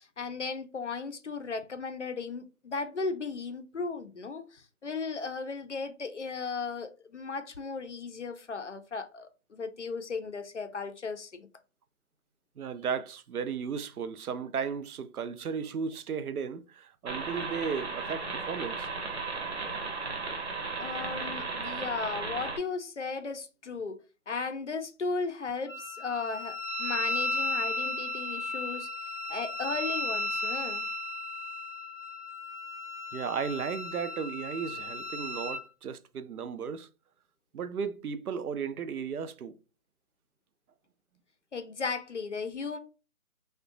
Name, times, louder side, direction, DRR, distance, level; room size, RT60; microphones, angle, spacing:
voice 1, 0.0-11.5 20.8-24.0 24.3-28.9 29.3-30.9 41.5-42.8, left 4 dB, 55° left, 0.5 m, -36 dB
voice 2, 12.6-19.2 33.1-36.9 37.5-39.6, right 6 dB, 80° right, 0.5 m, -35 dB
sound 1, 17.1-22.6, right 4 dB, 50° right, 0.7 m, -35 dB
Wind instrument woodwind instrument, 25.7-35.6, left 1 dB, 15° right, 0.7 m, -35 dB
3.6 x 2.1 x 2.5 m
figure-of-eight pair, 165°, 44 cm